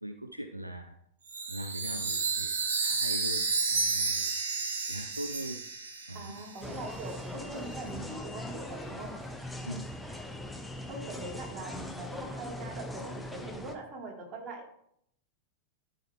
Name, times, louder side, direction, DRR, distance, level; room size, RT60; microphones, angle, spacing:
voice 1, 0.0-1.0 1.5-2.5 2.8-5.6 6.1-6.3 9.6-9.9, equal, 85° right, 7 dB, 0.5 m, -41 dB
Chime, 1.3-6.8, right 4 dB, 65° right, 1.5 m, -31 dB
voice 2, 6.1-9.3 10.0-10.2 10.9-14.8, right 2 dB, 30° right, 0 dB, 2.0 m, -42 dB
sound 1, 6.6-13.7, left 1 dB, 5° left, 0.7 m, -41 dB
12.5 x 5.0 x 3.2 m, 0.70 s
figure-of-eight pair, 90°, 0 cm